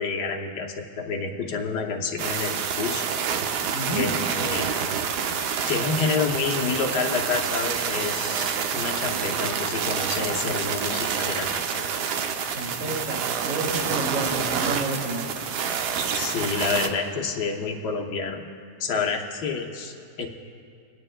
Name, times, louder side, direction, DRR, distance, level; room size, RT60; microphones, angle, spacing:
voice 1, 0.0-3.0 4.0-4.1 4.4-4.6 5.7-11.8 16.1-18.4 18.8-20.3, left 5 dB, 80° left, 2 dB, 1.5 m, -28 dB
sound 1, 2.2-16.9, right 7 dB, 85° right, 1.3 m, -28 dB
voice 2, 3.7-4.1 12.5-15.5, right 2 dB, 50° right, -1 dB, 2.0 m, -30 dB
26.0 x 9.8 x 2.2 m, 2.4 s
omnidirectional pair, 1.8 m